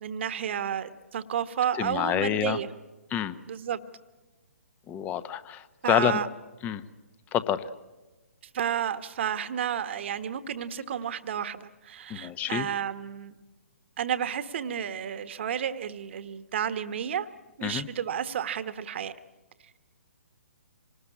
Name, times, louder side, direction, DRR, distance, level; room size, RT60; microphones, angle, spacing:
voice 1, 0.0-2.7 3.5-3.8 5.8-6.3 8.5-13.3 14.0-17.3 17.6-19.2, right 9 dB, 50° right, 13 dB, 1.3 m, -31 dB
voice 2, 1.8-2.6 3.1-3.4 4.9-5.6 5.9-6.2 6.6-6.8 7.3-7.6 12.1-12.7 17.6-17.9, left 10 dB, 20° left, 15 dB, 1.0 m, -27 dB
27.0 x 19.5 x 8.6 m, 1.2 s
figure-of-eight pair, 135°, 8 cm